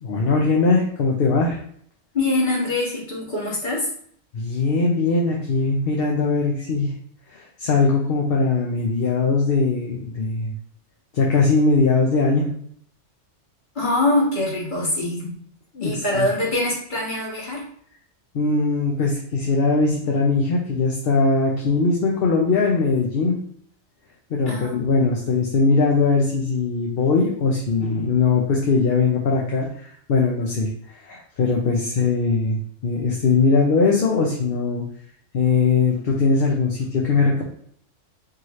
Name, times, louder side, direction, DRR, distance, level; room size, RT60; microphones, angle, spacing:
voice 1, 0.0-1.6 4.3-6.9 7.3-10.5 11.1-12.5 15.7-16.3 18.3-23.4 24.3-30.7 31.0-34.8 35.3-37.4, left 4 dB, 55° left, -1 dB, 0.9 m, -20 dB
voice 2, 2.1-3.9 13.7-15.4 15.8-17.7 24.5-24.9, left 2 dB, 40° left, -4 dB, 1.6 m, -23 dB
4.7 x 3.0 x 3.1 m, 0.63 s
omnidirectional pair, 1.2 m